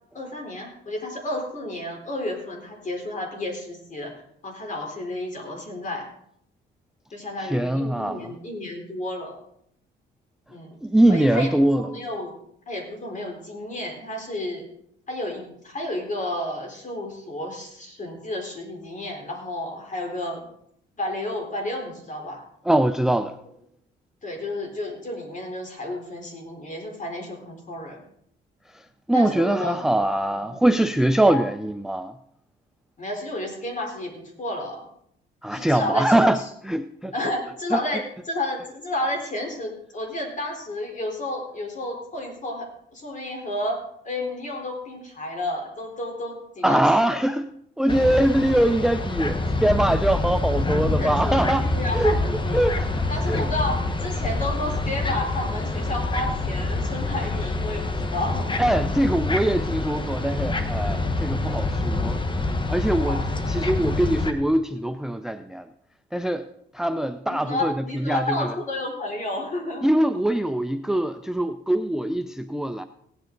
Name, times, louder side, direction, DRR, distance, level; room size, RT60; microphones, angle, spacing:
voice 1, 0.1-4.1 4.4-6.1 7.1-9.4 10.5-10.8 11.1-12.3 12.7-14.6 15.1-20.5 21.0-22.4 24.2-28.0 29.1-29.8 30.3-30.6 31.3-31.4 33.0-34.9 35.5-36.3 37.1-46.8 50.7-52.6 53.1-58.5 63.0-63.7 67.3-69.9, left 1 dB, 40° left, 4.0 m, -31 dB
voice 2, 7.4-8.3 10.8-11.9 22.6-23.4 28.7-32.2 35.4-37.1 37.7-37.8 46.6-47.5 47.8-53.5 58.6-62.2 62.7-63.2 63.5-65.7 66.1-66.5 66.7-68.5 69.8-72.8, right 1 dB, ahead, 0.5 m, -23 dB
sound 1, 47.9-64.3, left 2 dB, 25° left, 1.2 m, -26 dB
17.5 x 9.0 x 3.9 m
cardioid pair, 90°, 20 cm